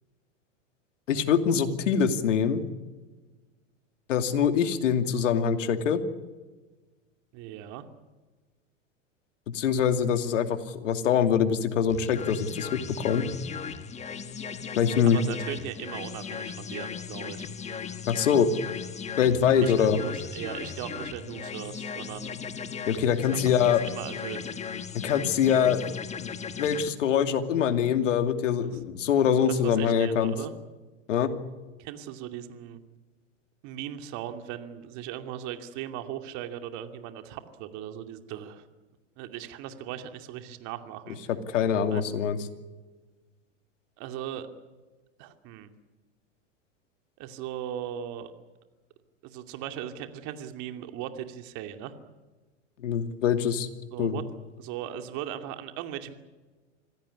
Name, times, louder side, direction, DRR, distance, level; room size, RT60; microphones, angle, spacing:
voice 1, 1.1-2.6 4.1-6.0 9.5-13.3 14.8-15.2 18.1-18.5 19.2-20.0 22.9-23.8 25.0-25.9 26.2-26.3 26.6-30.3 31.1-31.3 41.3-42.4 52.8-53.7 54.0-54.2, left 8 dB, 75° left, 8 dB, 2.7 m, -24 dB
voice 2, 7.3-7.9 15.0-17.5 19.6-22.3 23.3-23.4 23.9-24.5 28.6-28.7 29.4-30.5 31.8-32.8 33.6-38.6 39.2-41.2 41.9-42.1 44.0-44.5 45.2-45.7 47.2-48.3 49.2-51.9 53.9-54.2 54.6-56.1, right 11 dB, 50° right, 7 dB, 2.6 m, -38 dB
sound 1, 11.9-26.9, left 6 dB, 20° left, 1.5 m, -37 dB
26.0 x 16.5 x 9.9 m, 1.3 s
hypercardioid pair, 110°, 37 cm